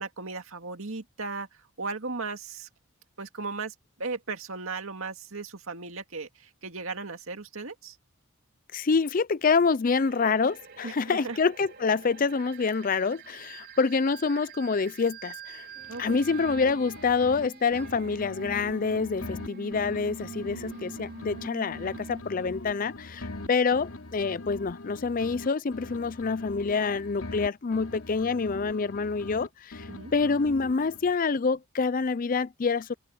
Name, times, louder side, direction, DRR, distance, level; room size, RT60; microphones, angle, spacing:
voice 1, 0.0-1.5 1.8-2.7 3.2-8.0 10.8-11.4 15.9-16.2 23.4-23.5 29.9-30.1, right 3 dB, 65° right, 2.2 m, -36 dB
voice 2, 8.7-15.7 16.0-32.9, left 4 dB, 40° left, 0.4 m, -27 dB
sound 1, 9.9-22.2, right 4 dB, 50° right, 5.4 m, -45 dB
sound 2, 15.7-24.1, right 1 dB, 20° right, 5.1 m, -61 dB
sound 3, 15.8-17.5 17.7-21.5 21.7-25.5 25.7-29.5 29.7-31.1, left 2 dB, 70° left, 3.1 m, -42 dB
open air
head